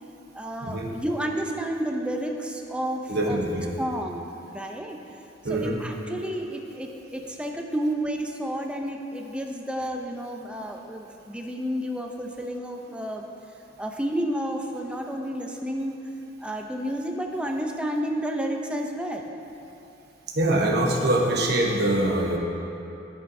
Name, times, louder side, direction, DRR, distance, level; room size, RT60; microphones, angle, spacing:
voice 1, 0.3-3.4 3.8-5.0 5.5-13.2 13.8-16.0 16.4-19.3, equal, 5° right, 2 dB, 0.5 m, -31 dB
voice 2, 3.1-3.7 5.4-5.8 20.3-22.4, right 1 dB, 60° right, -1 dB, 1.0 m, -23 dB
14.0 x 5.6 x 2.7 m, 2.9 s
head